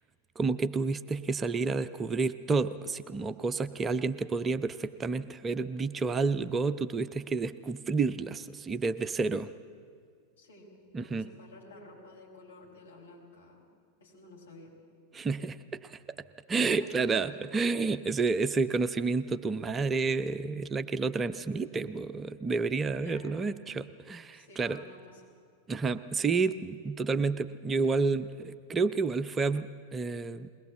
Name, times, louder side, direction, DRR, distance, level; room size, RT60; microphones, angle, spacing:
voice 1, 0.4-9.5 10.9-11.3 15.1-16.0 16.5-24.8 25.7-30.5, right 4 dB, 20° right, 12 dB, 0.5 m, -30 dB
voice 2, 10.4-10.7 11.0-13.7 14.0-14.8 16.8-17.4 23.0-23.3 24.3-25.2, left 2 dB, 70° left, -2 dB, 5.3 m, -52 dB
21.5 x 19.5 x 8.1 m, 2.1 s
figure-of-eight pair, 90°, 0 cm